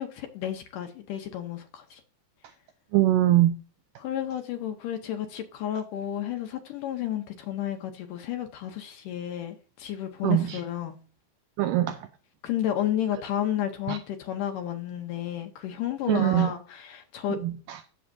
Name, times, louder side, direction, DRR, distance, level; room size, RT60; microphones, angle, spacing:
voice 1, 0.0-2.0 4.0-11.0 12.4-17.4, left 10 dB, 75° left, 2.1 m, -32 dB
voice 2, 2.9-3.5 10.2-10.6 11.6-12.0 13.9-14.0 16.1-16.5 17.4-17.9, right 14 dB, 85° right, 1.9 m, -22 dB
15.0 x 7.1 x 2.6 m
omnidirectional pair, 4.4 m